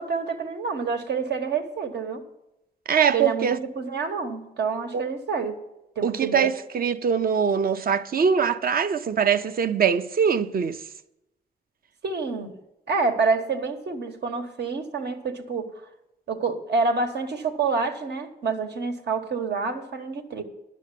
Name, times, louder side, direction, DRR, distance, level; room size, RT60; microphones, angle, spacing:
voice 1, 0.0-2.2 3.1-5.6 5.9-6.5 12.0-12.5 12.9-15.8 16.3-20.4, right 4 dB, 80° right, 1.4 m, -27 dB
voice 2, 2.9-3.6 4.9-5.0 6.0-10.8, right 7 dB, 60° right, 0.6 m, -22 dB
10.5 x 6.4 x 8.3 m
wide cardioid pair, 105°, 17 cm